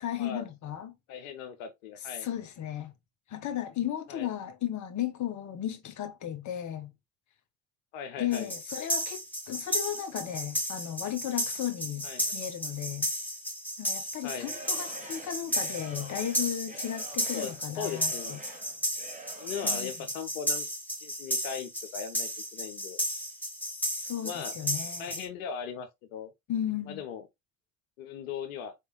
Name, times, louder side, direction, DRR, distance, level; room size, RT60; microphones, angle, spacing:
voice 1, 0.0-0.9 2.2-2.9 3.3-6.9 8.2-13.1 13.8-18.4 19.6-19.9 24.0-25.2 26.5-27.0, left 11 dB, 45° left, 1.0 m, -35 dB
voice 2, 1.1-2.3 4.1-4.3 7.9-8.5 12.0-12.4 14.2-14.5 17.3-18.4 19.4-20.7 21.0-23.0 24.2-24.5 25.0-26.3 26.9-27.3 28.0-28.7, left 7 dB, 75° left, 0.8 m, -39 dB
sound 1, 8.3-25.3, equal, 5° left, 2.2 m, -34 dB
Singing / Crowd, 14.3-19.9, right 2 dB, 20° right, 1.7 m, -47 dB
4.2 x 3.4 x 3.0 m
hypercardioid pair, 55°, 41 cm